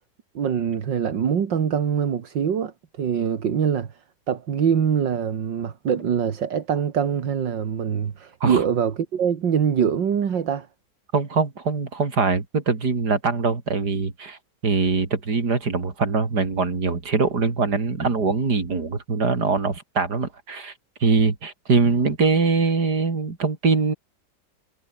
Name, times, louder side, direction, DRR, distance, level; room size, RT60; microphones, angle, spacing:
voice 1, 0.3-4.0 4.3-10.7, right 7 dB, 80° right, 2.4 m, -24 dB
voice 2, 11.1-14.4 14.6-20.7 21.0-23.9, right 4 dB, 60° right, 3.8 m, -22 dB
omnidirectional pair, 1.9 m